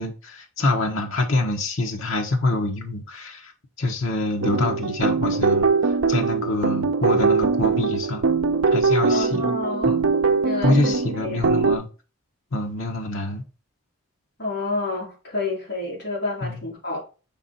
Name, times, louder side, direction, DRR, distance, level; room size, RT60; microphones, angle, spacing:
voice 1, 0.0-3.5 3.8-8.2 8.7-9.5 9.9-10.0 10.6-11.9 12.5-13.4 16.4-16.6, left 2 dB, 75° left, 1.1 m, -25 dB
sound 1, 4.4-11.8, right 4 dB, 70° right, 0.5 m, -21 dB
voice 2, 9.1-10.0 10.4-11.4 14.4-17.0, left 2 dB, 55° left, 3.0 m, -29 dB
5.9 x 3.8 x 4.1 m
head